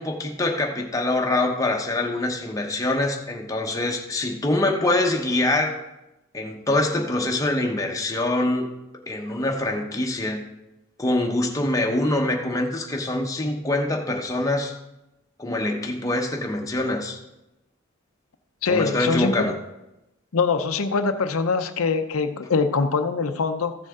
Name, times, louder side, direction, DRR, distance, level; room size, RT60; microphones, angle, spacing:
voice 1, 0.0-5.8 6.3-8.7 9.1-10.4 11.0-14.7 15.4-17.2 18.7-19.6, left 2 dB, 15° left, 1 dB, 1.0 m, -24 dB
voice 2, 18.6-19.3 20.3-23.7, left 4 dB, 80° left, 8 dB, 0.6 m, -23 dB
14.0 x 6.6 x 3.7 m, 0.94 s
head